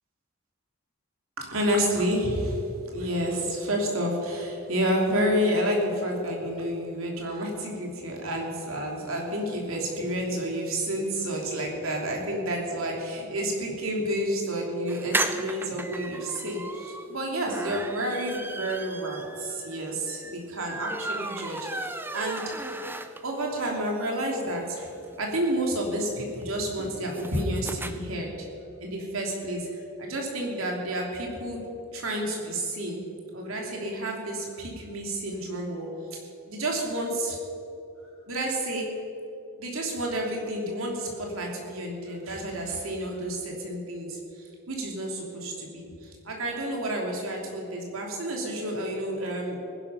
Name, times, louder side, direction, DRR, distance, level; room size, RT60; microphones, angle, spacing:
voice 1, 1.4-2.6 2.9-22.5 23.0-24.9 25.2-28.5 28.8-33.0 33.3-36.2 36.5-37.4 38.3-39.0 39.6-49.7, right 1 dB, 70° right, 0 dB, 3.0 m, -30 dB
sound 1, 14.9-23.5 23.9-24.0 24.2-24.3 24.5-27.9, right 2 dB, 10° right, 0.6 m, -35 dB
19.0 x 11.0 x 5.6 m, 2.8 s
head